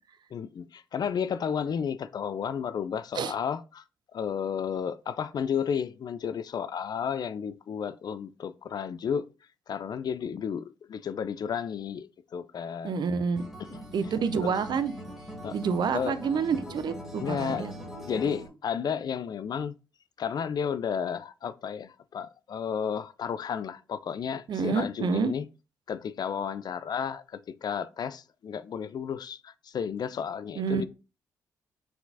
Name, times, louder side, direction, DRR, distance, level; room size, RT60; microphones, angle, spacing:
voice 1, 0.3-3.8 4.1-9.3 9.7-13.0 13.6-13.8 14.4-14.5 15.4-15.6 15.9-16.2 17.2-17.7 18.0-19.7 20.2-25.5 25.9-30.9, left 7 dB, 50° left, 0.4 m, -32 dB
voice 2, 12.8-13.4 13.9-14.9 15.5-17.7 24.5-25.3 30.6-30.8, right 5 dB, 55° right, 0.5 m, -28 dB
Acoustic guitar, 13.4-18.5, equal, ahead, 2.0 m, -41 dB
4.4 x 3.8 x 2.7 m
hypercardioid pair, 40°, 9 cm